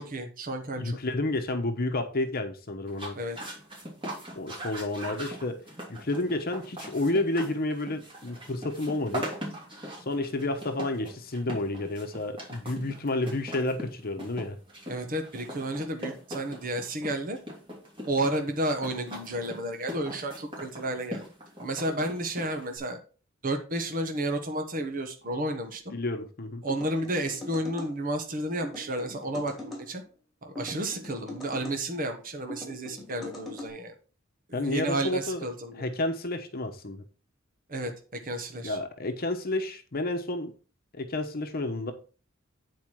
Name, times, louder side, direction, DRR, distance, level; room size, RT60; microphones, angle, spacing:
voice 1, 0.0-1.0 3.1-3.5 14.9-17.4 18.1-21.2 21.6-23.0 23.4-25.9 26.6-30.0 30.4-33.9 34.5-35.9 37.7-38.8, right 1 dB, 45° right, 1.2 m, -32 dB
voice 2, 0.8-3.2 4.3-5.6 5.9-9.3 10.0-14.6 25.9-26.6 34.5-35.5 35.7-37.0 38.6-40.5 40.9-41.9, left 2 dB, 50° left, 1.0 m, -30 dB
sound 1, 2.9-22.8, equal, 25° right, 3.1 m, -41 dB
sound 2, 26.7-27.9 28.6-29.8 30.5-31.8 32.5-33.7, left 1 dB, ahead, 3.4 m, -41 dB
9.1 x 4.7 x 4.7 m
head